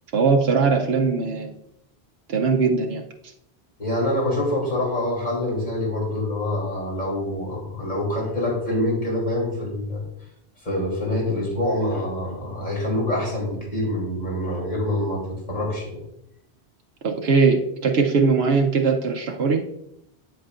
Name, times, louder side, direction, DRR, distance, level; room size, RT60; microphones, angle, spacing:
voice 1, 0.1-1.5 2.3-3.0 17.0-19.6, right 4 dB, 80° right, 2 dB, 1.0 m, -20 dB
voice 2, 3.8-10.0 10.6-16.0, left 1 dB, 45° left, -3 dB, 3.2 m, -25 dB
8.7 x 7.8 x 2.5 m, 0.77 s
omnidirectional pair, 1.1 m